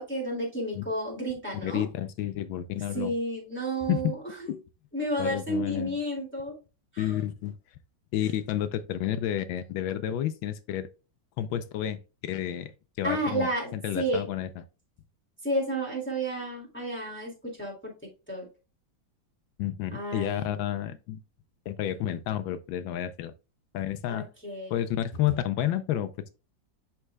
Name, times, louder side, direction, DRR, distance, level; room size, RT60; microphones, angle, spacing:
voice 1, 0.0-1.8 2.9-4.1 4.4-4.5 4.9-6.5 6.9-7.2 13.0-14.2 15.4-17.3 17.6-17.9 18.3-18.5 19.9-20.6 24.1-24.7, right 1 dB, 5° left, 2.7 m, -31 dB
voice 2, 1.5-3.1 3.9-4.1 4.5-4.6 5.2-6.0 7.0-7.5 8.1-10.9 11.4-12.7 13.0-14.6 19.6-21.2 21.7-23.3 23.7-24.3 24.7-26.3, left 11 dB, 85° left, 1.4 m, -30 dB
11.0 x 4.3 x 2.2 m
omnidirectional pair, 2.1 m